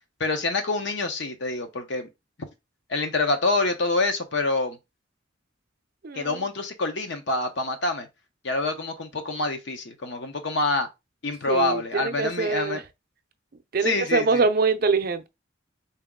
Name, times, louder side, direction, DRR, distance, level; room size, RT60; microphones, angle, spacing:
voice 1, 0.2-2.1 2.9-4.8 6.1-8.1 8.4-10.9 11.2-12.8 13.8-14.4, left 2 dB, 65° left, 0.8 m, -26 dB
voice 2, 6.0-6.4 11.5-12.8 13.7-15.3, right 4 dB, 50° right, 0.5 m, -24 dB
3.9 x 2.8 x 3.6 m
head